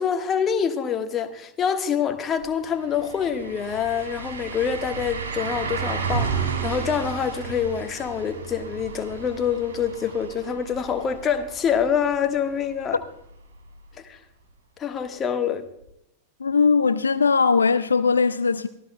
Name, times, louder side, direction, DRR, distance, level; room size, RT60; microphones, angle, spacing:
voice 1, 0.0-13.0 14.0-14.2 14.8-15.6, left 7 dB, 25° left, 1.4 m, -26 dB
sound 1, 2.4-2.5 2.8-12.6 13.0-13.1 15.8-15.9, right 6 dB, 65° right, 3.3 m, -32 dB
voice 2, 16.4-18.7, left 5 dB, 75° left, 0.5 m, -20 dB
23.5 x 15.0 x 2.2 m
figure-of-eight pair, 90°, 0 cm